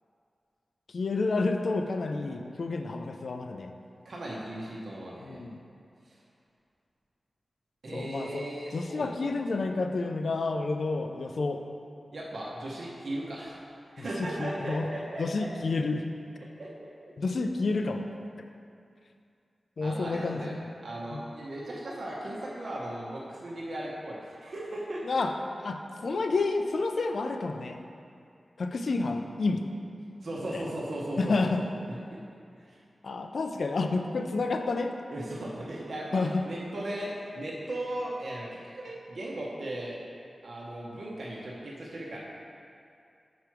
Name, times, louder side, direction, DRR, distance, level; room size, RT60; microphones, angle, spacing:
voice 1, 0.9-3.7 5.2-5.6 7.9-8.4 8.7-11.6 14.0-14.9 15.2-16.1 17.2-18.1 18.4-18.5 19.8-20.6 21.1-21.2 25.0-25.3 25.6-27.8 28.6-29.7 30.5-30.7 31.2-31.7 33.0-34.9 36.1-36.4, left 3 dB, 70° left, 5 dB, 0.4 m, -30 dB
voice 2, 4.0-5.4 6.0-6.1 7.8-9.1 12.1-13.6 14.0-15.5 16.4-16.9 19.8-25.2 30.2-31.5 31.9-32.0 32.7-32.8 35.1-40.0 40.4-42.2, right 1 dB, 70° right, -5 dB, 1.0 m, -37 dB
5.1 x 4.6 x 5.9 m, 2.5 s
wide cardioid pair, 105°, 0 cm